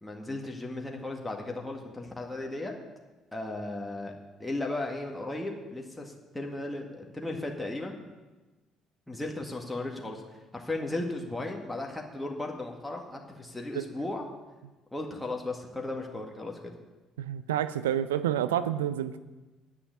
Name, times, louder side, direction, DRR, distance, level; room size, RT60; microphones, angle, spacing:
voice 1, 0.0-2.7 3.3-4.1 4.4-8.0 9.1-14.2 14.9-16.7, left 2 dB, 10° left, 0 dB, 1.9 m, -36 dB
voice 2, 17.2-19.2, right 11 dB, 75° right, 13 dB, 0.5 m, -29 dB
9.9 x 8.9 x 8.3 m, 1.2 s
figure-of-eight pair, 50°, 0 cm